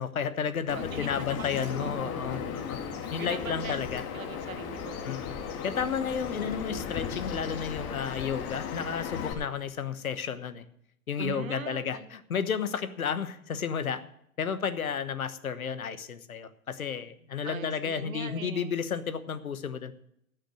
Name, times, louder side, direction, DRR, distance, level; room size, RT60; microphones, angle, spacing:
voice 1, 0.0-2.8 3.1-4.0 5.0-5.3 5.6-10.6 11.1-14.0 14.4-19.9, left 7 dB, 80° left, 12 dB, 1.2 m, -32 dB
Bird vocalization bird call bird song, 0.7-9.3, left 7 dB, 35° left, 2.3 m, -36 dB
voice 2, 0.7-2.4 3.0-5.2 6.4-6.6 11.2-12.0 17.4-18.7, right 7 dB, 70° right, 8 dB, 1.7 m, -42 dB
16.5 x 6.4 x 6.4 m, 0.72 s
figure-of-eight pair, 105°, 42 cm